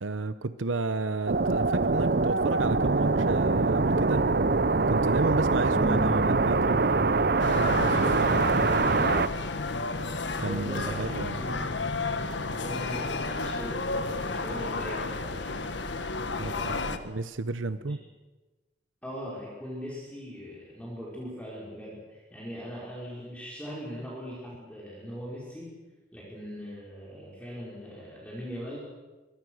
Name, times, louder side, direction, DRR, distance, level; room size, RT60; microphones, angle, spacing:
voice 1, 0.0-4.3 4.9-7.3 7.6-8.8 10.4-11.4 16.4-18.0, right 3 dB, 85° right, 13 dB, 0.8 m, -32 dB
sound 1, 1.3-9.3, right 3 dB, 50° right, 0.7 m, -24 dB
sound 2, 5.7-12.0, equal, 20° right, 1.6 m, -39 dB
sound 3, 7.4-17.0, left 3 dB, 70° left, 1.6 m, -32 dB
voice 2, 10.4-11.9 12.6-15.9 16.4-17.1 17.8-17.9 19.0-25.7 26.1-28.8, equal, 5° left, -5 dB, 5.2 m, -40 dB
25.5 x 23.5 x 6.5 m, 1.2 s
head